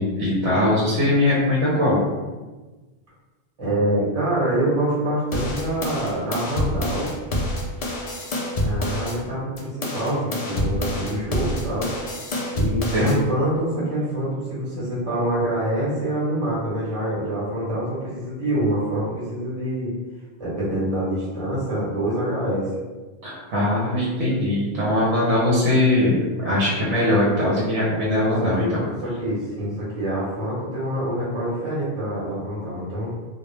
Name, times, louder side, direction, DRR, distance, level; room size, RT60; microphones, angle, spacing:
voice 1, 0.0-2.0 12.9-13.2 23.2-28.6, left 1 dB, 75° right, -6 dB, 0.9 m, -21 dB
voice 2, 3.6-7.1 8.6-11.9 12.5-19.9 20.4-22.7 28.4-33.1, right 1 dB, 30° right, -9 dB, 0.9 m, -25 dB
sound 1, 5.3-9.2 9.6-13.2, left 1 dB, 75° left, 0.3 m, -27 dB
2.3 x 2.1 x 3.0 m, 1.2 s
omnidirectional pair, 1.2 m